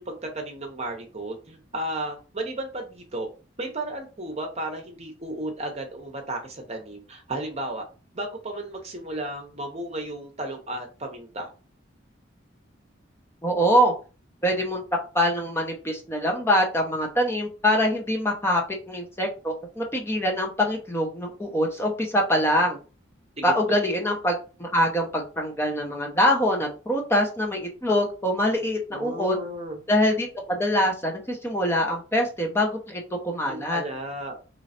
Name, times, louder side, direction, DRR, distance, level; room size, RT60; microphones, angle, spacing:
voice 1, 0.0-3.3 3.6-7.8 8.1-11.5 23.4-23.8 28.9-29.8 33.5-34.4, right 1 dB, 35° right, 3 dB, 0.9 m, -34 dB
voice 2, 13.4-13.9 14.4-14.8 15.1-18.6 18.9-22.8 23.4-29.4 29.9-33.8, equal, 15° left, 1 dB, 0.8 m, -24 dB
3.8 x 3.2 x 4.2 m, 0.35 s
head